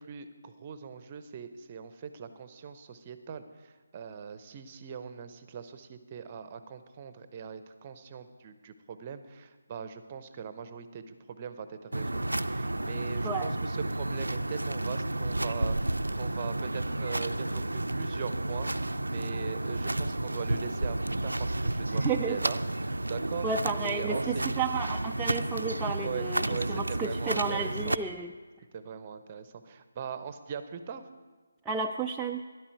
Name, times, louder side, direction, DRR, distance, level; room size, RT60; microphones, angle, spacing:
voice 1, 0.0-23.5 23.7-24.6 26.0-28.0 28.7-31.0, right 7 dB, 30° right, 11 dB, 0.7 m, -41 dB
sound 1, 11.9-28.0, right 2 dB, 80° right, 0.4 m, -31 dB
voice 2, 22.0-22.4 23.4-28.3 31.7-32.4, right 5 dB, 5° right, -1 dB, 0.3 m, -32 dB
12.5 x 11.0 x 4.5 m, 1.4 s
figure-of-eight pair, 150°, 0 cm